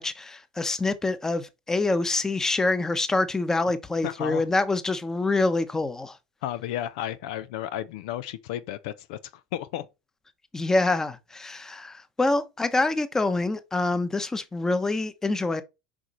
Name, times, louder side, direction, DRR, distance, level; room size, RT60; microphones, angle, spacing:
voice 1, 0.0-6.2 10.5-15.6, left 2 dB, 15° left, 1.0 m, -26 dB
voice 2, 4.0-4.4 6.4-9.2 9.5-9.9, left 12 dB, 65° left, 0.6 m, -32 dB
6.1 x 5.0 x 4.3 m
hypercardioid pair, 90°, 4 cm